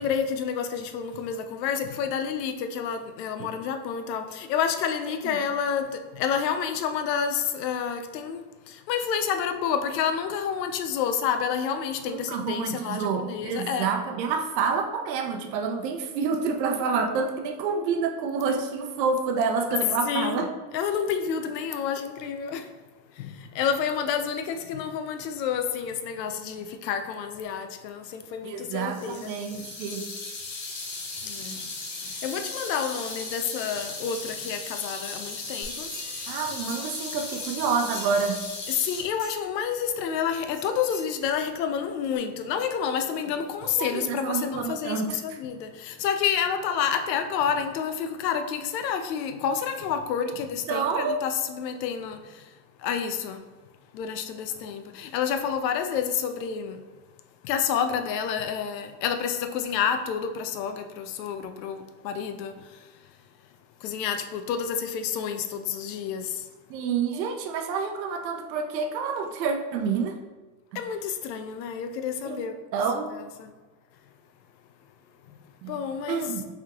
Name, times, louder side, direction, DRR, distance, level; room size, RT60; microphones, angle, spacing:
voice 1, 0.0-13.9 20.0-22.7 23.1-29.3 31.2-31.7 32.0-36.3 38.7-52.5 52.8-53.4 53.9-56.8 57.4-62.9 63.8-66.5 70.7-72.6 73.4-73.5 75.7-76.3, left 7 dB, 90° left, 8 dB, 0.6 m, -29 dB
voice 2, 12.1-20.5 28.4-30.1 31.5-31.6 36.3-38.4 43.6-45.4 50.3-50.4 50.7-51.2 66.7-70.1 70.7-70.8 72.2-72.4 72.7-73.1 75.6-75.8 76.1-76.4, right 5 dB, 90° right, 4 dB, 0.7 m, -28 dB
sound 1, 28.7-39.0, left 3 dB, 25° left, 0.4 m, -37 dB
sound 2, 35.6-37.1 37.4-38.4 38.8-39.6 40.5-41.7 42.1-42.2, equal, 10° right, 0.8 m, -45 dB
3.5 x 2.8 x 3.5 m, 1.2 s
supercardioid pair, 160°, 49 cm